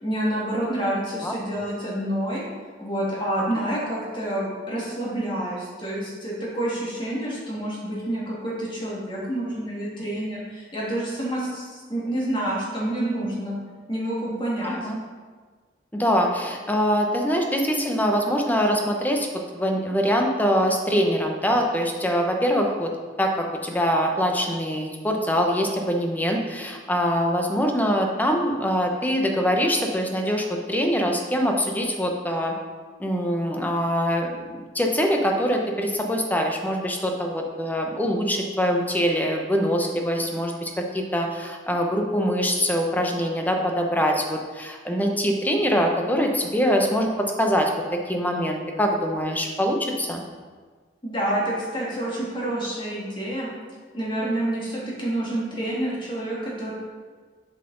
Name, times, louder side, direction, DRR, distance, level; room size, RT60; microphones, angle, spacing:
voice 1, 0.0-2.4 2.8-13.6 13.9-14.8 51.0-53.5 53.9-56.7, right 1 dB, 30° left, -6 dB, 2.0 m, -28 dB
voice 2, 14.6-15.0 15.9-19.3 19.5-22.9 23.2-32.5 33.0-47.7 48.1-50.2, equal, 10° left, 2 dB, 0.8 m, -23 dB
7.2 x 5.9 x 3.9 m, 1.5 s
head